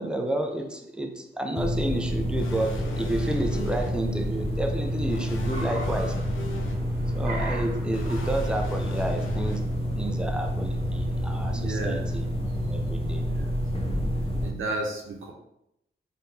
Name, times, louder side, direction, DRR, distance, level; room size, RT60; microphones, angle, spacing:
voice 1, 0.0-6.2 7.1-9.6 10.0-12.2 12.7-13.2, right 1 dB, 5° right, 3 dB, 0.6 m, -30 dB
sound 1, 1.6-14.5, equal, 30° left, 0.8 m, -28 dB
Car, 2.2-12.2, right 2 dB, 45° right, 1.2 m, -44 dB
sound 2, 2.4-3.9 5.1-6.7 7.9-9.6, left 1 dB, 75° left, 0.6 m, -38 dB
voice 2, 11.5-12.0 13.3-13.4 14.4-15.3, right 2 dB, 80° right, 1 dB, 0.8 m, -32 dB
3.7 x 2.8 x 3.4 m, 0.81 s
cardioid pair, 50°, 20 cm